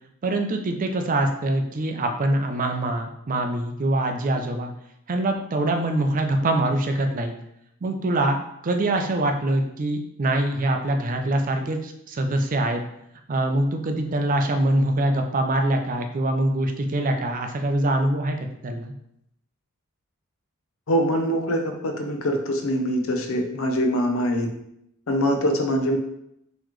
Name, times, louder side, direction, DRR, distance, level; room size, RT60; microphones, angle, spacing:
voice 1, 0.2-4.7 5.1-7.3 7.8-8.4 8.6-12.8 13.3-18.4 18.6-18.9, right 1 dB, 40° right, 5 dB, 0.4 m, -24 dB
voice 2, 20.9-24.5 25.1-26.0, equal, 70° left, 4 dB, 0.6 m, -23 dB
3.9 x 3.0 x 3.1 m, 0.77 s
head